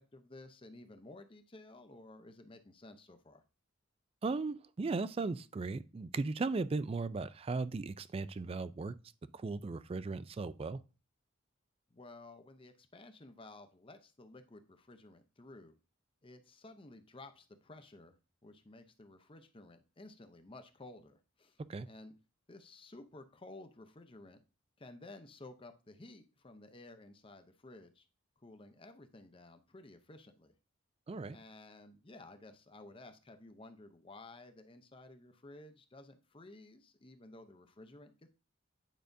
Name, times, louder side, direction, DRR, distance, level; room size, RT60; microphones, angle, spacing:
voice 1, 0.0-3.4 11.9-15.7 16.2-18.2 18.4-22.1 22.5-24.4 24.8-28.1 28.4-30.6 31.3-38.3, left 2 dB, 25° left, 0.6 m, -54 dB
voice 2, 4.2-8.9 9.3-10.8 21.7-21.9 31.1-31.4, right 3 dB, 30° right, 0.3 m, -37 dB
9.1 x 5.0 x 2.6 m
head